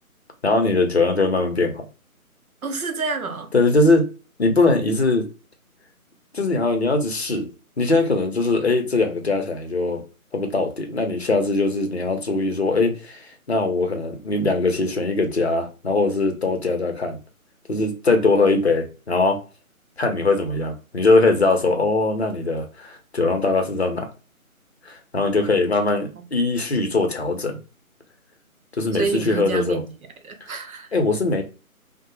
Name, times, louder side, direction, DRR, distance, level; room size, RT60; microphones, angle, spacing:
voice 1, 0.4-1.9 3.5-4.0 4.4-5.2 6.3-7.5 7.8-10.0 10.3-13.2 13.5-17.2 17.7-19.4 20.0-24.1 24.9-27.6 28.8-29.8 30.9-31.4, left 3 dB, 50° left, 0.6 m, -21 dB
voice 2, 2.6-3.5 28.9-29.9 30.2-30.9, right 4 dB, 70° right, 0.8 m, -28 dB
2.7 x 2.1 x 3.0 m
figure-of-eight pair, 175°, 44 cm